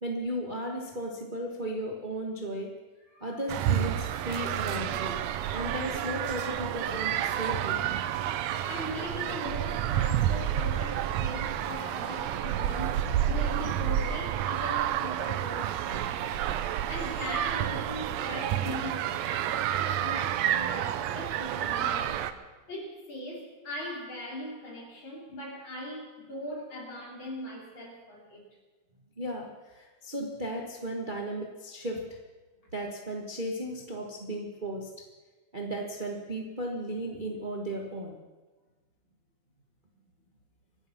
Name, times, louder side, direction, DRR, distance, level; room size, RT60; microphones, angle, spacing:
voice 1, 0.0-2.7 3.2-5.2 5.5-7.8 29.2-32.2 32.7-35.1 35.5-38.2, right 1 dB, 50° right, 1 dB, 0.5 m, -35 dB
sound 1, 3.5-22.3, right 10 dB, 75° right, 1.7 m, -30 dB
voice 2, 8.7-16.2 16.9-22.3 22.7-28.4, left 1 dB, 40° left, -2 dB, 4.0 m, -40 dB
25.0 x 9.0 x 5.9 m, 1.2 s
omnidirectional pair, 3.5 m